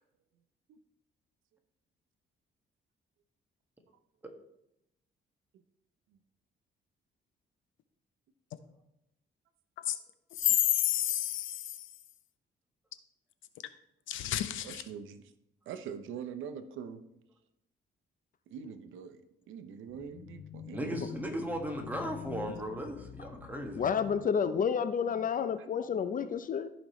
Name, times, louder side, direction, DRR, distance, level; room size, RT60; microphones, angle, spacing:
voice 1, 10.3-12.0 14.1-14.9 22.4-22.6, left 12 dB, 80° left, 0.7 m, -30 dB
voice 2, 14.6-15.2 15.7-17.0 18.5-21.0, right 7 dB, 80° right, 0.7 m, -43 dB
voice 3, 20.1-21.3 21.9-22.5 23.2-26.7, left 7 dB, 45° left, 0.5 m, -32 dB
voice 4, 20.7-23.8, right 1 dB, 10° right, 1.7 m, -37 dB
14.5 x 5.1 x 3.1 m
cardioid pair, 90°, 20 cm